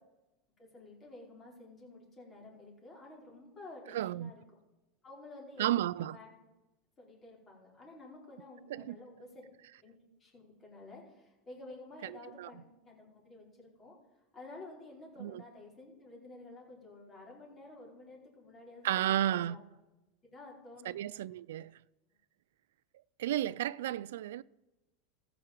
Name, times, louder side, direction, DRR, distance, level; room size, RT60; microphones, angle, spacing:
voice 1, 0.6-4.4 5.0-5.7 5.9-6.4 7.0-9.5 9.8-14.0 14.3-19.6 20.2-20.9, left 2 dB, 25° left, 4.6 m, -51 dB
voice 2, 3.9-4.3 5.6-6.2 8.7-9.0 12.0-12.5 15.2-15.4 18.8-19.6 20.9-21.8 23.2-24.4, right 12 dB, 85° right, 0.3 m, -33 dB
14.5 x 6.0 x 7.4 m
supercardioid pair, 120°, 0 cm